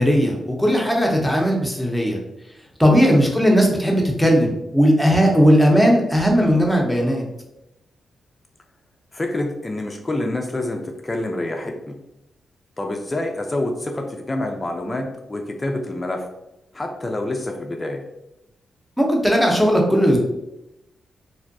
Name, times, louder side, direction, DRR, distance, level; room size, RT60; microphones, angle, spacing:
voice 1, 0.0-2.2 2.8-7.2 19.0-20.2, equal, ahead, 0 dB, 0.7 m, -17 dB
voice 2, 9.1-12.0 12.8-16.3 16.7-18.0, left 1 dB, 30° left, 3 dB, 0.3 m, -27 dB
2.6 x 2.1 x 2.5 m, 0.88 s
cardioid pair, 65°, 0 cm